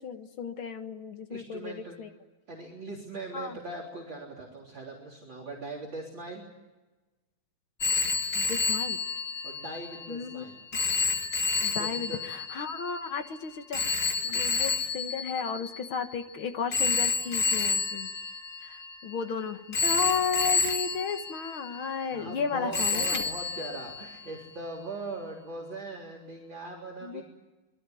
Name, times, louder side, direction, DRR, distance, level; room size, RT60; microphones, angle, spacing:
voice 1, 0.0-2.1 3.3-3.6 8.3-9.0 10.1-10.5 11.6-14.0 14.2-18.1 18.6-23.2 27.0-27.2, left 6 dB, 50° left, 7 dB, 2.0 m, -34 dB
voice 2, 1.3-2.0 2.5-6.5 9.4-10.6 11.8-12.2 14.3-14.4 22.1-27.2, right 2 dB, 40° right, 1 dB, 4.2 m, -40 dB
Telephone, 7.8-16.2 16.7-19.2 19.7-22.4 22.7-24.5, left 4 dB, 25° left, 1.9 m, -30 dB
26.5 x 22.5 x 9.3 m, 1.2 s
omnidirectional pair, 3.5 m